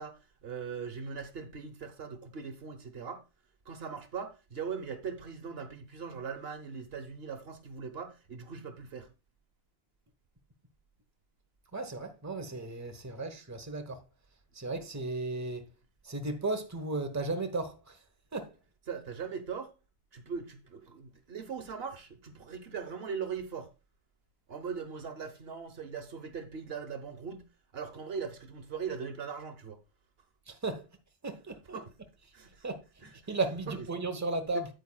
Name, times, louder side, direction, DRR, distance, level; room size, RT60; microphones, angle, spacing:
voice 1, 0.0-3.2 3.6-9.1 18.9-19.7 20.1-23.7 24.5-27.5 27.7-29.8 31.7-31.9 32.3-32.7 33.0-33.1 33.7-33.9 34.5-34.6, right 6 dB, 75° right, 1.2 m, -40 dB
voice 2, 11.7-14.0 14.5-15.7 16.0-18.0 18.3-18.5 30.5-30.9 31.2-31.8 32.6-32.8 33.3-34.7, right 2 dB, 15° right, 1.0 m, -35 dB
9.0 x 8.7 x 2.3 m
omnidirectional pair, 1.0 m